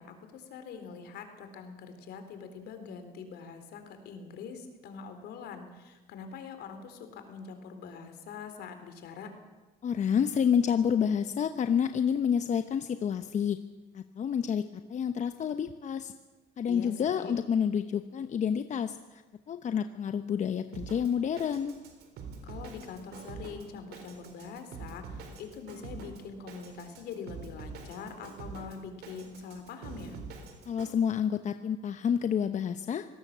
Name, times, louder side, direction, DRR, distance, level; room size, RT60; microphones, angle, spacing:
voice 1, 0.0-9.3 16.7-17.3 22.4-30.2, left 5 dB, 75° left, 8 dB, 3.9 m, -44 dB
voice 2, 9.8-13.6 13.9-14.6 14.9-16.1 16.6-19.2 19.5-21.8 30.7-33.1, left 7 dB, 45° left, 9 dB, 1.0 m, -29 dB
Drum kit, 20.7-30.9, right 4 dB, 75° right, 4.1 m, -45 dB
25.5 x 18.0 x 7.5 m, 1.2 s
cardioid pair, 110°, 17 cm